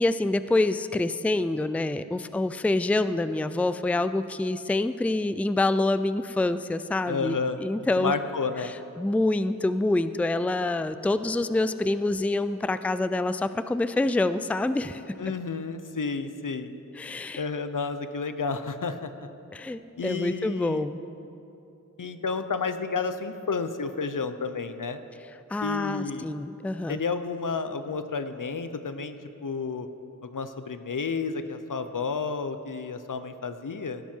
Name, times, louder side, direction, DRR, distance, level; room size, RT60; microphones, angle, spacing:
voice 1, 0.0-8.1 8.6-15.0 16.9-17.5 19.5-21.0 25.5-27.0, left 2 dB, 5° left, 12 dB, 0.4 m, -26 dB
voice 2, 7.1-7.6 8.0-8.7 15.2-16.7 17.4-19.3 20.0-20.9 22.0-25.0 25.6-26.3 26.9-29.2 29.4-29.9 30.2-34.0, left 4 dB, 70° left, 10 dB, 0.8 m, -31 dB
16.5 x 12.0 x 4.6 m, 2.8 s
wide cardioid pair, 50°, 32 cm